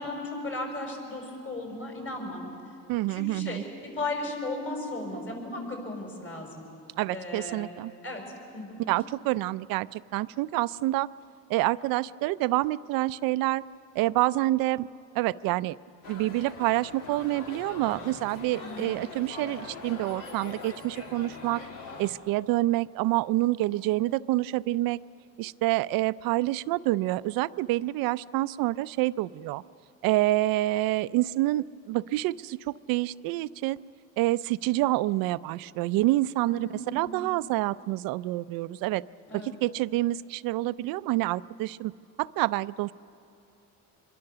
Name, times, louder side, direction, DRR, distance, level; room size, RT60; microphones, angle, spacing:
voice 1, 0.0-2.5 3.1-6.6 7.1-7.7 8.0-8.2 8.5-8.8 18.5-19.0 36.5-37.2 39.3-39.5, left 2 dB, 35° left, 1 dB, 5.8 m, -36 dB
voice 2, 2.9-3.6 7.0-7.9 8.9-11.1 11.5-13.6 14.0-14.9 15.1-15.8 16.1-21.6 22.0-25.0 25.4-29.6 30.0-33.8 34.2-39.0 39.3-41.9 42.2-42.9, right 17 dB, 85° right, 17 dB, 0.5 m, -27 dB
sound 1, 16.0-22.1, left 3 dB, 70° left, 3.0 m, -42 dB
25.5 x 22.5 x 6.8 m, 2.6 s
cardioid pair, 130°, 34 cm